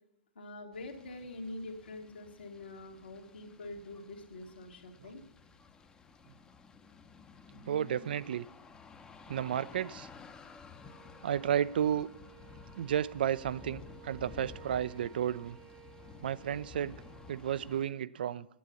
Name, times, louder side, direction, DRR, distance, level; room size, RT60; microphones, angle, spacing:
voice 1, 0.4-5.2, left 2 dB, 70° left, 3 dB, 1.9 m, -45 dB
sound 1, 0.7-17.8, left 5 dB, 15° left, 0.7 m, -53 dB
voice 2, 7.5-8.5 9.3-10.1 11.2-12.1 12.8-15.6 16.2-17.0 17.3-18.5, right 9 dB, 60° right, 19 dB, 0.4 m, -32 dB
sound 2, 10.8-17.3, right 11 dB, 25° right, 0.9 m, -57 dB
9.3 x 8.4 x 8.4 m, 0.86 s
figure-of-eight pair, 110°, 6 cm